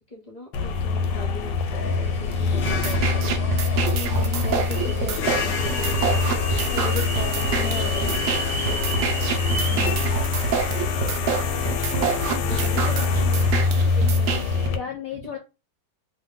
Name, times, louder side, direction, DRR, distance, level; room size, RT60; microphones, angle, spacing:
voice 1, 0.1-3.4 4.8-6.2 7.3-8.8 11.6-14.4, left 2 dB, 50° left, -1 dB, 0.4 m, -40 dB
sound 1, 0.5-14.8, left 4 dB, 90° left, 1.2 m, -24 dB
sound 2, 1.8-10.0, right 1 dB, 30° right, 0.9 m, -35 dB
sound 3, 2.7-14.7, right 6 dB, 75° right, 0.7 m, -28 dB
voice 2, 3.9-5.6 6.7-8.2 9.5-10.2 10.7-10.8 12.5-12.6 14.7-15.4, left 6 dB, 70° left, 3 dB, 0.8 m, -35 dB
2.8 x 2.1 x 3.5 m, 0.28 s
omnidirectional pair, 1.8 m